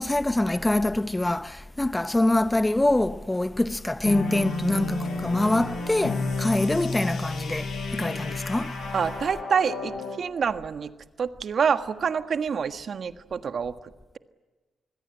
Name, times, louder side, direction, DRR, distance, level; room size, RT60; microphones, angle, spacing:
voice 1, 0.0-8.8, left 1 dB, 15° left, 1.0 m, -25 dB
sound 1, 4.0-10.2, left 3 dB, 70° left, 5.8 m, -31 dB
voice 2, 8.9-10.9 11.2-13.7, right 6 dB, 60° right, 1.5 m, -27 dB
28.0 x 21.0 x 8.0 m
supercardioid pair, 45°, 0 cm